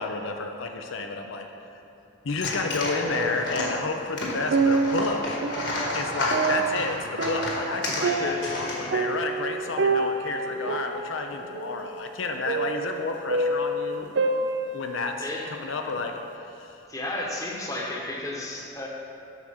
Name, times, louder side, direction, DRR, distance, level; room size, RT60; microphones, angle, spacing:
voice 1, 0.0-1.8 2.2-5.4 5.9-14.1 14.7-16.2 16.4-16.8, left 3 dB, 80° left, 4 dB, 0.6 m, -31 dB
sound 1, 2.3-9.2, left 1 dB, 60° left, 1.6 m, -31 dB
sound 2, 3.0-3.9 4.3-15.4 15.9-16.0, right 3 dB, 65° right, 0.5 m, -28 dB
voice 2, 8.0-8.6 15.2-15.5 16.9-18.9, left 1 dB, 15° left, -2 dB, 1.0 m, -33 dB
8.0 x 6.2 x 5.6 m, 2.7 s
head